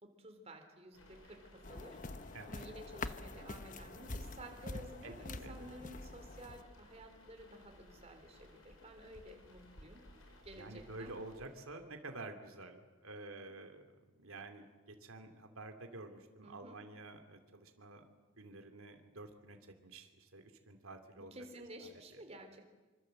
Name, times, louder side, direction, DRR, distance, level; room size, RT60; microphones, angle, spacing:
voice 1, 0.0-10.0 10.4-11.1 16.4-16.8 21.2-22.7, right 1 dB, 30° right, 4 dB, 3.6 m, -53 dB
sound 1, 0.9-12.0, left 1 dB, 80° left, 5.3 m, -60 dB
sound 2, 1.6-6.6, left 2 dB, 40° left, 1.0 m, -46 dB
voice 2, 10.6-13.8 14.2-18.1 18.4-21.3 21.8-21.9, right 2 dB, 85° right, 6 dB, 2.6 m, -50 dB
26.5 x 25.5 x 7.8 m, 1.3 s
head